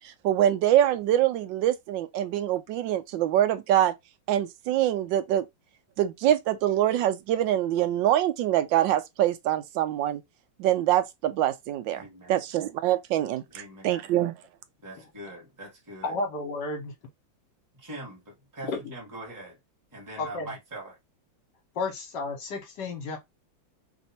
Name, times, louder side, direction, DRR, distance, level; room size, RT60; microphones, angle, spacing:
voice 1, 0.0-3.9 4.3-5.4 6.0-10.2 10.6-14.3, right 12 dB, 75° right, 1.3 m, -24 dB
voice 2, 11.9-12.4 13.5-14.1 14.8-16.1 17.7-19.6 19.9-21.0, right 1 dB, 10° right, 1.4 m, -42 dB
voice 3, 16.0-16.9 20.2-20.5 21.7-23.2, left 3 dB, 65° left, 1.6 m, -32 dB
3.5 x 2.5 x 4.2 m
omnidirectional pair, 2.1 m